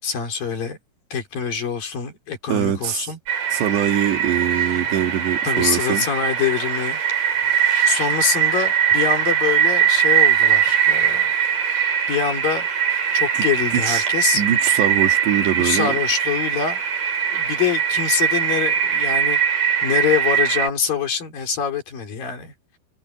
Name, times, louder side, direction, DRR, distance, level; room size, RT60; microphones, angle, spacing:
voice 1, 0.0-0.8 1.1-3.2 5.4-7.0 7.9-11.3 12.1-12.7 13.1-14.4 15.6-16.8 17.3-22.5, left 7 dB, 55° left, 5.3 m, -25 dB
voice 2, 2.5-3.1 3.5-6.1 13.3-13.4 13.7-14.1 14.3-16.0, right 10 dB, 70° right, 4.3 m, -23 dB
sound 1, 3.3-20.7, right 9 dB, 50° right, 6.2 m, -21 dB
omnidirectional pair, 5.1 m